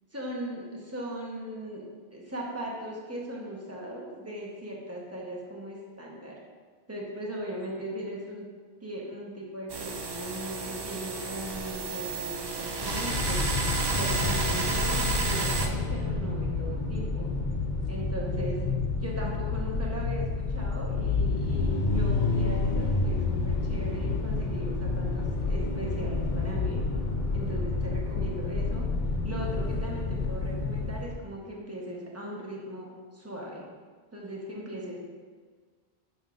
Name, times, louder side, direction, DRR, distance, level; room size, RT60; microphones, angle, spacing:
voice 1, 0.1-1.8 2.1-6.4 6.9-8.4 8.8-13.4 13.7-17.3 17.9-18.6 18.9-26.8 27.3-28.8 29.2-33.6 34.1-35.0, right 1 dB, 15° right, -4 dB, 1.1 m, -38 dB
sound 1, 9.7-15.7, right 3 dB, 40° right, 0.4 m, -31 dB
sound 2, 12.8-31.2, left 3 dB, 50° left, 0.8 m, -29 dB
8.8 x 5.6 x 2.6 m, 1.5 s
omnidirectional pair, 1.0 m